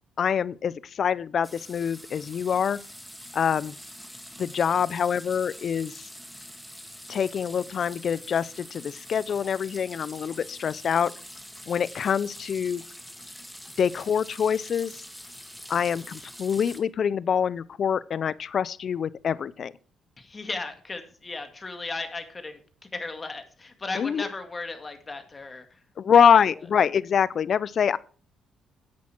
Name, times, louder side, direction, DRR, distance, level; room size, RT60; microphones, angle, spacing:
voice 1, 0.2-2.8 3.3-3.7 4.4-6.1 7.1-11.1 11.7-12.8 13.8-14.9 15.7-19.7 23.9-24.2 26.0-28.0, left 7 dB, 55° left, 0.5 m, -25 dB
sound 1, 1.4-16.8, equal, ahead, 1.8 m, -45 dB
voice 2, 20.2-22.6 22.9-25.8, left 3 dB, 30° left, 2.0 m, -36 dB
10.5 x 8.5 x 4.5 m
cardioid pair, 90°, 0 cm